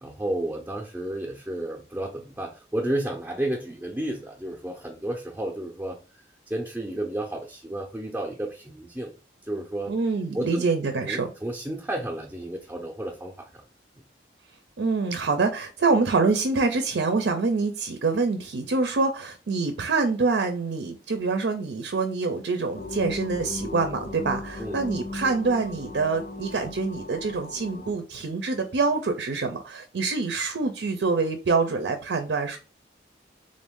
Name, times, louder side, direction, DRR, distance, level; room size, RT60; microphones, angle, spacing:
voice 1, 0.0-6.0 6.5-9.1 9.5-9.9 10.3-10.6 11.1-13.5 24.6-24.8, right 1 dB, 10° right, 0 dB, 0.5 m, -32 dB
voice 2, 9.9-11.3 14.8-32.6, right 4 dB, 80° right, 6 dB, 0.5 m, -25 dB
sound 1, 22.7-27.9, left 3 dB, 50° left, 0.6 m, -37 dB
3.7 x 2.6 x 3.6 m, 0.34 s
head